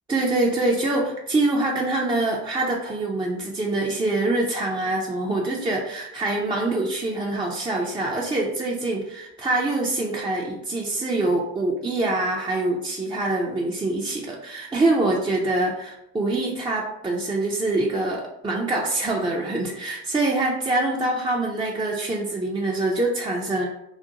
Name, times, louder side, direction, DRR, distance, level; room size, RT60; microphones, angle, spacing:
voice 1, 0.1-23.7, right 2 dB, 15° right, -2 dB, 0.3 m, -25 dB
2.5 x 2.1 x 2.8 m, 0.84 s
hypercardioid pair, 55°, 41 cm